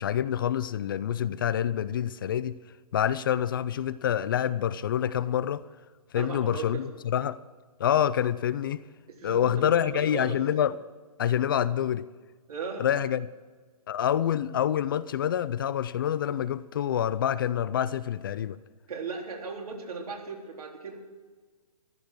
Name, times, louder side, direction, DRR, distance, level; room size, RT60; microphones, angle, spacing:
voice 1, 0.0-2.6 2.9-5.6 6.1-7.4 7.8-8.8 9.2-10.7 11.2-12.1 12.8-13.3 13.9-18.6, left 10 dB, 35° left, 0.4 m, -27 dB
voice 2, 6.1-6.9 9.1-10.4 12.5-12.9 18.9-20.9, right 4 dB, 70° right, 3.8 m, -37 dB
14.5 x 11.5 x 6.3 m
hypercardioid pair, 150°, 20 cm